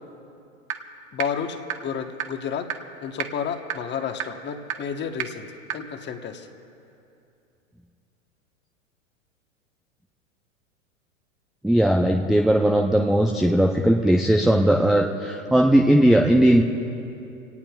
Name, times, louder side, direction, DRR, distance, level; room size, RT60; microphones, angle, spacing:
sound 1, 0.7-0.8 1.2-1.3 1.7-1.8 2.2-2.3 2.7-2.8 3.2-3.3 3.7-3.8 4.2-4.3 4.7-4.8 5.2-5.3 5.7-5.8, right 12 dB, 55° right, 1.2 m, -27 dB
voice 1, 1.1-2.7 3.0-5.5 5.7-6.5, left 7 dB, 25° left, 6 dB, 1.2 m, -31 dB
voice 2, 11.6-16.6, right 1 dB, ahead, 0 dB, 0.5 m, -18 dB
28.0 x 18.0 x 2.4 m, 2.7 s
hypercardioid pair, 105°, 40 cm